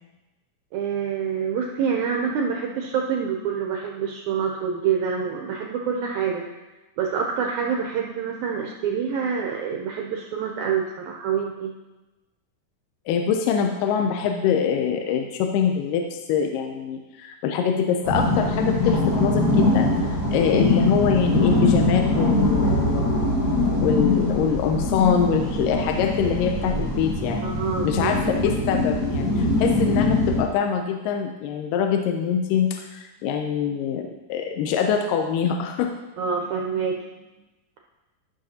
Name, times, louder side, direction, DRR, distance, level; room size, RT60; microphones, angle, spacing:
voice 1, 0.7-6.5 7.0-11.7 27.4-28.1 36.2-37.2, right 6 dB, 80° right, 1 dB, 1.7 m, -26 dB
voice 2, 13.1-23.1 23.8-27.4 27.8-35.9, left 7 dB, 80° left, 4 dB, 2.1 m, -24 dB
sound 1, 18.0-30.4, left 2 dB, 45° left, 1.2 m, -22 dB
13.5 x 6.4 x 2.8 m, 1.1 s
omnidirectional pair, 4.1 m